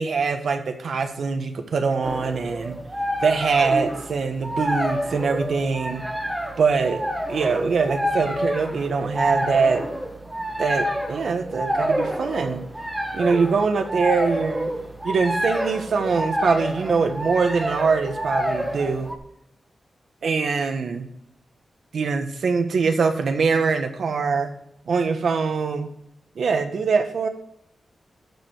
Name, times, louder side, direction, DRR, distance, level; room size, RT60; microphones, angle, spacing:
voice 1, 0.0-2.8 3.2-6.0 6.6-9.9 10.6-12.6 13.1-14.7 15.0-19.1 20.2-21.1 21.9-24.5 24.9-25.9 26.3-27.3, right 5 dB, 75° right, 6 dB, 1.3 m, -23 dB
sound 1, 2.0-19.2, equal, 10° right, 1.3 m, -28 dB
12.0 x 5.1 x 6.1 m, 0.77 s
wide cardioid pair, 150°, 0 cm